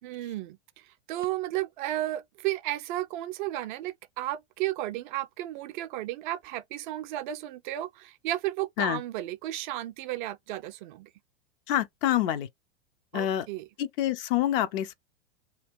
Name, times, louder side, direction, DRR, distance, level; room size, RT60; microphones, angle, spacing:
voice 1, 0.0-11.1 13.1-13.7, right 15 dB, 45° right, 0.4 m, -33 dB
voice 2, 11.7-12.5 13.1-13.5 13.8-15.0, left 12 dB, 50° left, 0.6 m, -27 dB
2.9 x 2.2 x 3.5 m
hypercardioid pair, 105°, 35 cm